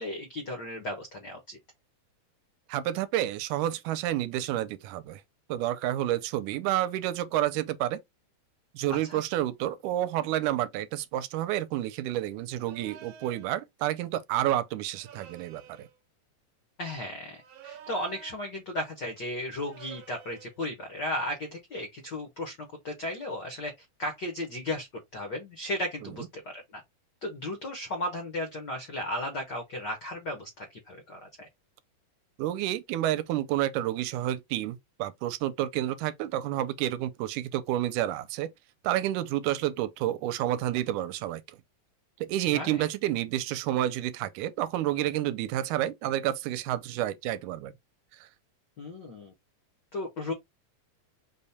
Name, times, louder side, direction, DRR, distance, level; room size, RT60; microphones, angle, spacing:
voice 1, 0.0-1.6 8.9-9.2 16.8-24.9 25.1-26.8 27.2-31.5 42.5-42.9 48.8-49.3 49.9-50.3, left 1 dB, 80° left, 0.9 m, -35 dB
voice 2, 2.7-5.2 5.5-8.0 8.7-15.9 32.4-38.5 38.8-41.4 42.2-47.7 48.1-48.3, right 13 dB, 85° right, 2.0 m, -29 dB
sound 1, 12.6-13.5 14.9-16.0 17.3-18.6 19.5-20.6, right 9 dB, 70° right, 1.6 m, -49 dB
5.2 x 2.2 x 4.1 m
omnidirectional pair, 3.5 m